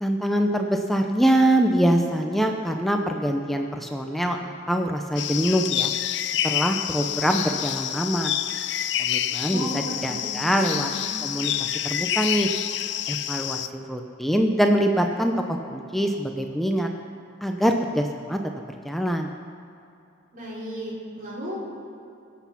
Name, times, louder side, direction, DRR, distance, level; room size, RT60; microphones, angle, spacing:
voice 1, 0.0-5.9 6.4-8.3 9.0-10.9 11.2-12.5 13.1-16.9 17.4-18.4 18.8-19.3, equal, ahead, 3 dB, 0.6 m, -24 dB
sound 1, 5.2-13.7, left 11 dB, 60° left, 0.4 m, -28 dB
voice 2, 9.5-11.1 20.3-21.6, equal, 45° right, -6 dB, 4.1 m, -35 dB
22.0 x 8.3 x 5.8 m, 2.7 s
head